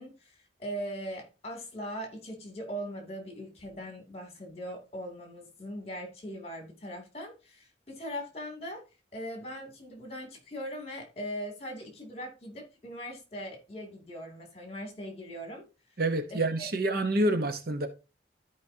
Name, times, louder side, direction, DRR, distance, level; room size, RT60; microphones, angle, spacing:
voice 1, 0.0-8.8 9.1-15.6 16.3-16.7, equal, 35° left, 2.7 m, -40 dB
voice 2, 16.0-17.9, right 1 dB, 60° right, 1.1 m, -27 dB
13.5 x 5.0 x 2.8 m
head